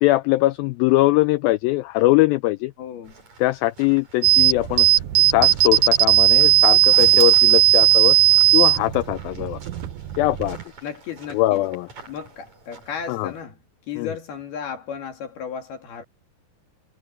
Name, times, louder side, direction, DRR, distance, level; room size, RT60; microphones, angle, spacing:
voice 1, 0.0-2.7 3.4-4.9 5.2-8.2 8.5-9.6 10.2-10.6 11.3-11.9 13.1-13.3 14.0-14.1, left 18 dB, 85° left, 2.1 m, -21 dB
voice 2, 2.8-3.1 10.8-11.6 12.1-13.6 13.9-16.0, left 7 dB, 70° left, 4.3 m, -34 dB
sound 1, 3.0-13.4, right 4 dB, 45° right, 6.6 m, -45 dB
sound 2, 4.2-10.6, right 15 dB, 75° right, 1.9 m, -17 dB
omnidirectional pair, 4.7 m